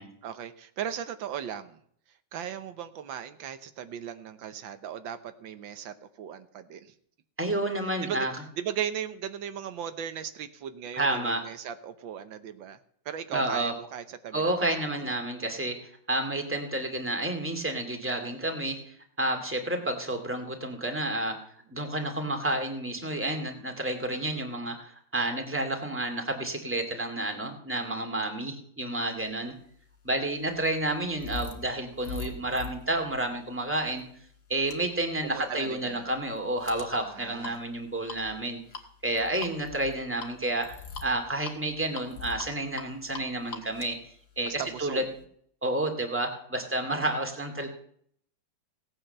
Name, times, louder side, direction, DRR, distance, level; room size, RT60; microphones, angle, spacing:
voice 1, 0.2-1.8 2.3-6.9 8.0-8.3 8.6-12.8 13.0-15.2 35.2-36.1 37.0-37.6 44.4-45.1, right 9 dB, 85° right, 10 dB, 1.7 m, -37 dB
voice 2, 7.4-8.3 10.9-11.4 13.3-13.7 14.3-21.4 21.7-29.5 30.0-34.0 34.5-38.6 39.0-40.7 41.0-44.0 44.4-45.0 45.6-47.7, right 1 dB, 5° right, 4 dB, 2.1 m, -30 dB
sound 1, 29.6-45.2, left 5 dB, 60° left, 2.2 m, -44 dB
17.5 x 8.9 x 6.7 m, 0.64 s
omnidirectional pair, 2.1 m